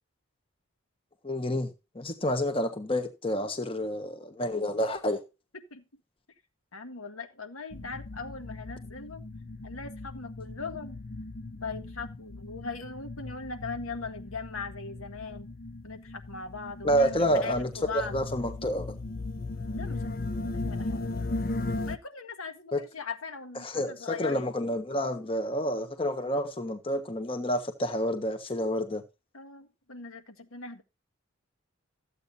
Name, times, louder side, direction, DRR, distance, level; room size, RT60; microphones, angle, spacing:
voice 1, 1.2-1.7 1.9-5.2 16.8-19.0 22.7-22.8 23.6-29.0, equal, 25° left, 1.3 m, -29 dB
voice 2, 5.5-5.8 6.7-9.2 9.6-11.0 11.6-15.5 15.8-18.2 19.7-21.1 21.8-24.5 29.3-30.8, left 4 dB, 75° left, 1.6 m, -40 dB
sound 1, 7.7-22.0, left 2 dB, 40° left, 0.6 m, -37 dB
14.5 x 8.3 x 2.7 m
head